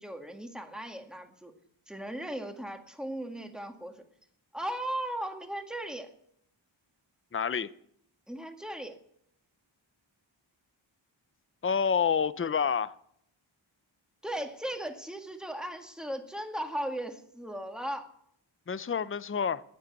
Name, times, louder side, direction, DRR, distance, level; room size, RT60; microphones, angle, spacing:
voice 1, 0.0-1.5 1.9-4.0 4.5-6.1 8.3-9.0 14.2-18.1, right 1 dB, ahead, 1.9 m, -37 dB
voice 2, 7.3-7.7 11.6-12.9 18.7-19.6, left 6 dB, 25° left, 0.6 m, -28 dB
14.0 x 9.6 x 8.1 m
wide cardioid pair, 60°, 48 cm